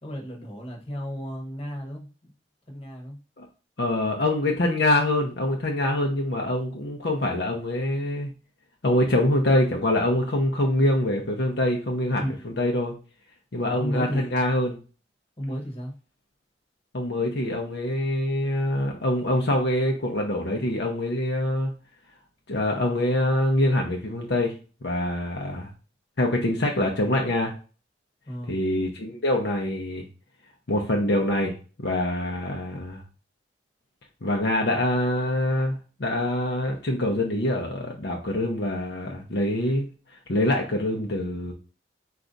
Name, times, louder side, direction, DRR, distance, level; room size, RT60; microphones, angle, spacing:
voice 1, 0.0-2.3 2.7-3.2 12.2-12.5 13.6-14.4 15.4-15.9 28.3-28.6, equal, 35° left, 0 dB, 1.1 m, -34 dB
voice 2, 3.8-8.3 8.8-12.9 13.5-14.8 16.9-21.7 22.5-24.5 24.8-25.7 26.2-27.5 28.5-30.1 30.7-31.5 31.8-33.0 34.2-39.9 40.3-41.5, left 1 dB, 65° left, 0 dB, 0.8 m, -25 dB
4.6 x 2.5 x 3.9 m, 0.35 s
head